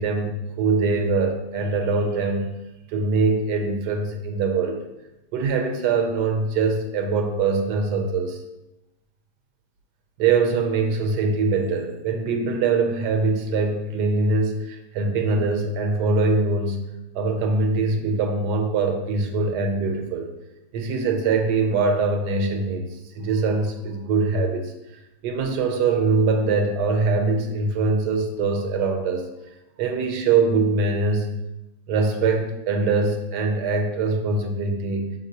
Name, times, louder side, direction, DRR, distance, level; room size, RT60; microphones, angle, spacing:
voice 1, 0.0-2.5 2.9-4.8 5.3-8.4 10.2-16.8 17.1-20.3 20.7-22.8 23.1-24.7 25.2-29.3 29.8-31.3 31.9-35.1, right 4 dB, 80° right, 4 dB, 1.2 m, -23 dB
5.3 x 2.9 x 2.7 m, 0.95 s
omnidirectional pair, 1.8 m